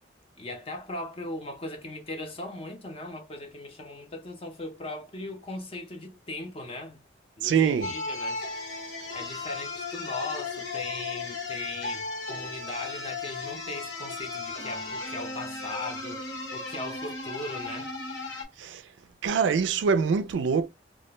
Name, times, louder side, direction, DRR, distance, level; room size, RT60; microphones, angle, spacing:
voice 1, 0.4-7.0 7.4-8.5 9.1-17.9, left 2 dB, 30° left, 0.5 m, -38 dB
voice 2, 7.4-7.9 18.6-18.8 19.2-20.7, right 6 dB, 75° right, 0.3 m, -24 dB
sound 1, 7.8-18.4, left 3 dB, 70° left, 0.9 m, -36 dB
2.3 x 2.1 x 2.9 m
head